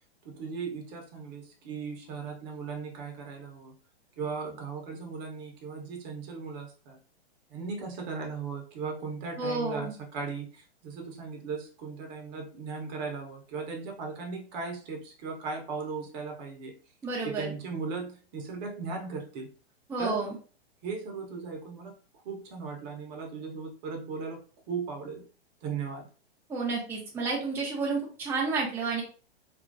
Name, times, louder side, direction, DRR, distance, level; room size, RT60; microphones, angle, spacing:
voice 1, 0.2-3.7 4.2-7.0 7.5-16.7 17.2-19.5 20.0-20.2 20.8-21.9 22.2-24.4 24.7-25.2 25.6-26.1, right 4 dB, 40° right, 2 dB, 0.9 m, -37 dB
voice 2, 9.4-9.9 17.0-17.5 19.9-20.3 26.5-29.0, right 4 dB, 5° right, -4 dB, 0.7 m, -30 dB
2.8 x 2.5 x 2.6 m, 0.38 s
hypercardioid pair, 115°, 32 cm